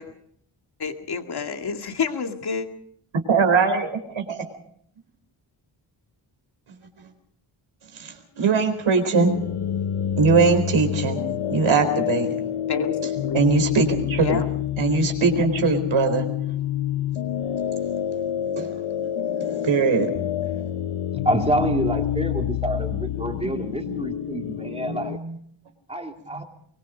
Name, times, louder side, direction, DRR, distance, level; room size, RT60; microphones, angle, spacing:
voice 1, 0.8-2.6 12.7-12.9 13.2-13.4 14.2-14.4, left 6 dB, 50° left, 5 dB, 2.2 m, -28 dB
voice 2, 3.3-4.4 7.9-9.3 10.2-11.2 11.5-12.4 13.0-14.4 14.8-16.3 18.5-18.8 19.4-20.1 23.5-23.9 24.9-25.3, right 4 dB, 75° right, 6 dB, 4.3 m, -21 dB
sound 1, 9.1-25.2, left 10 dB, 90° left, 0.8 m, -27 dB
voice 3, 21.2-25.2 25.9-26.4, right 1 dB, 15° right, 3 dB, 2.7 m, -27 dB
23.5 x 22.5 x 5.1 m, 0.65 s
wide cardioid pair, 145°, 48 cm